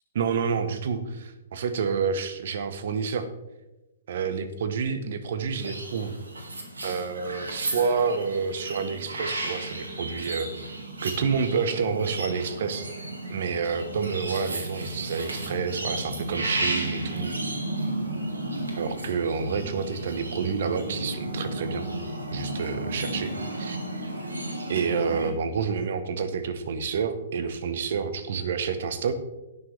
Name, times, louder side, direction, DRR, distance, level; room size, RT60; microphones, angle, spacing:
voice 1, 0.1-3.3 4.1-6.2 6.8-10.8 11.0-12.9 13.3-17.3 18.8-21.9 22.3-23.8 24.7-29.2, right 5 dB, 55° right, 11 dB, 1.2 m, -29 dB
sound 1, 5.5-25.3, right 1 dB, 80° right, 2.0 m, -33 dB
18.0 x 6.5 x 3.4 m, 1.0 s
figure-of-eight pair, 120°, 0 cm